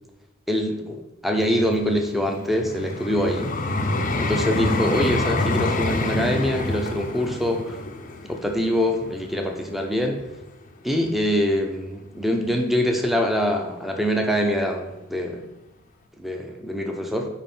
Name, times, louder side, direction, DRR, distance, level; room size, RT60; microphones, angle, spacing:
voice 1, 0.5-3.6 4.2-7.8 8.2-10.2 10.8-15.4 16.2-17.3, equal, ahead, 2 dB, 0.8 m, -24 dB
Vehicle, 1.3-10.4 11.0-11.2, left 2 dB, 40° left, 0.7 m, -27 dB
8.8 x 3.2 x 5.5 m, 0.95 s
head